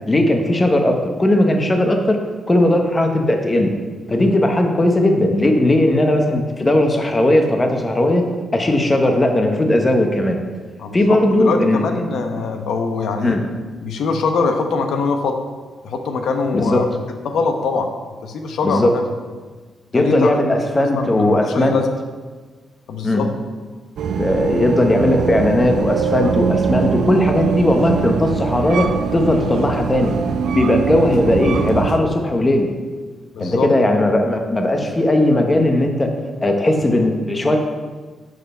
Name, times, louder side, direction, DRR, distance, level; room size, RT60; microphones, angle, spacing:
voice 1, 0.1-2.2 2.5-3.7 4.1-8.3 8.5-10.4 10.9-11.9 13.2-13.4 16.5-16.8 18.6-18.9 19.9-21.8 23.0-23.2 24.2-30.1 30.5-32.7 33.4-36.1 36.4-37.6, left 1 dB, 15° left, 4 dB, 0.8 m, -17 dB
voice 2, 10.8-13.4 13.8-15.4 15.8-16.8 17.2-17.9 18.2-19.0 19.9-20.4 20.9-21.8 22.9-23.3 33.3-33.7, left 4 dB, 75° left, 5 dB, 1.0 m, -22 dB
sound 1, 24.0-32.0, right 6 dB, 75° right, 0.6 m, -22 dB
7.3 x 6.5 x 5.5 m, 1.4 s
wide cardioid pair, 175°, 0 cm